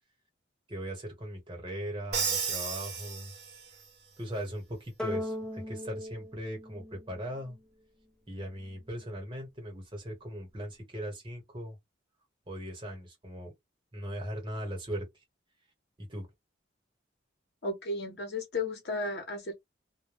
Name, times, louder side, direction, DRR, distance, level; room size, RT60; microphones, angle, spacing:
voice 1, 0.7-3.3 3.7-3.8 4.2-7.6 8.3-11.8 12.5-13.5 13.9-15.1 16.0-16.3, equal, 25° right, 1.1 m, -39 dB
Crash cymbal, 2.1-3.9, right 6 dB, 55° right, 0.8 m, -33 dB
sound 1, 5.0-7.6, left 1 dB, 5° left, 0.6 m, -38 dB
voice 2, 17.6-19.5, left 2 dB, 60° left, 0.8 m, -34 dB
2.2 x 2.1 x 3.2 m
head